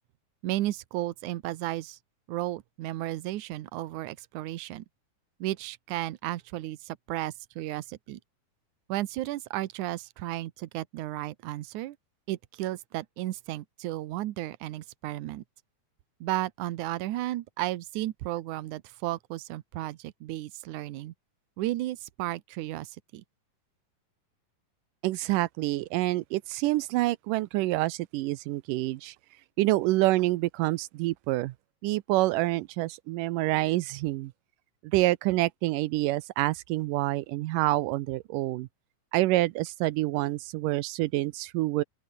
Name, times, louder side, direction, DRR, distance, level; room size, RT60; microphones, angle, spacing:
voice 1, 0.4-2.0 2.3-4.8 5.4-8.2 8.9-12.0 12.3-15.4 16.2-21.1 21.6-23.2, right 16 dB, 70° right, 2.3 m, -34 dB
voice 2, 25.0-29.2 29.6-31.5 31.8-34.3 34.8-38.7 39.1-41.8, right 18 dB, 85° right, 2.3 m, -27 dB
open air
omnidirectional pair, 3.8 m